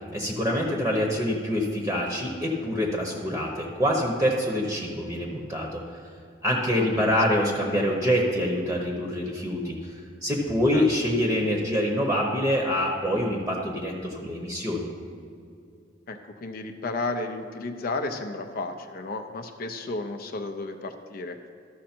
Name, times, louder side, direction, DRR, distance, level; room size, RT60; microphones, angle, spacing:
voice 1, 0.0-5.8 6.4-14.9, equal, 15° right, 0 dB, 0.8 m, -26 dB
voice 2, 6.8-7.1 10.7-10.9 16.1-21.4, left 3 dB, 50° left, 6 dB, 0.5 m, -33 dB
13.0 x 6.2 x 4.4 m, 2.4 s
head